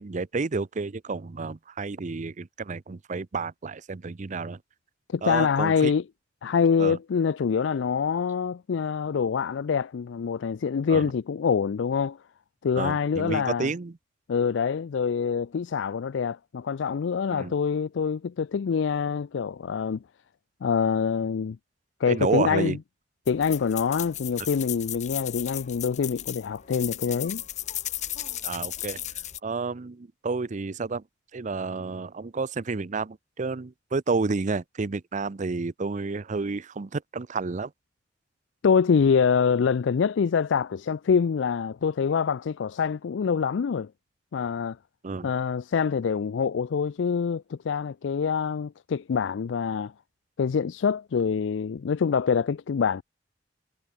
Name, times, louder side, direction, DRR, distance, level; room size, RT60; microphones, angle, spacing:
voice 1, 0.0-4.6 5.2-5.9 6.8-7.0 10.9-11.1 12.8-13.9 17.3-17.5 22.1-22.8 28.4-29.0 29.4-31.0 31.3-37.7 45.0-45.3, right 4 dB, 45° right, 0.6 m, -30 dB
voice 2, 5.1-6.0 6.4-12.2 12.6-13.7 14.3-20.0 20.6-21.6 22.0-22.8 23.3-27.4 38.6-43.9 44.3-44.8 45.2-49.9 50.4-53.0, left 6 dB, 90° left, 0.4 m, -25 dB
sound 1, 23.3-29.4, left 12 dB, 40° left, 1.0 m, -35 dB
head